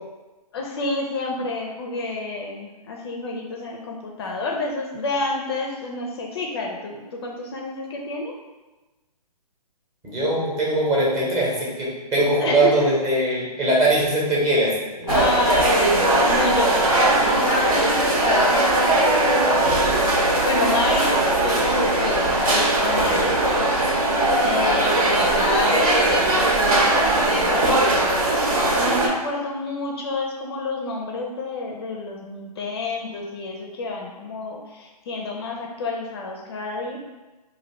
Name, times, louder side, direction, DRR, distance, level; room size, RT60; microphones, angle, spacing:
voice 1, 0.5-8.3 12.4-12.9 15.1-19.9 20.4-23.3 24.4-28.1 28.8-37.0, left 3 dB, 40° left, 0 dB, 0.4 m, -28 dB
voice 2, 10.0-15.1, right 1 dB, 15° right, -6 dB, 0.9 m, -21 dB
sound 1, 15.1-29.1, right 1 dB, 60° right, 0.9 m, -19 dB
2.8 x 2.5 x 4.1 m, 1.2 s
hypercardioid pair, 145°, 20 cm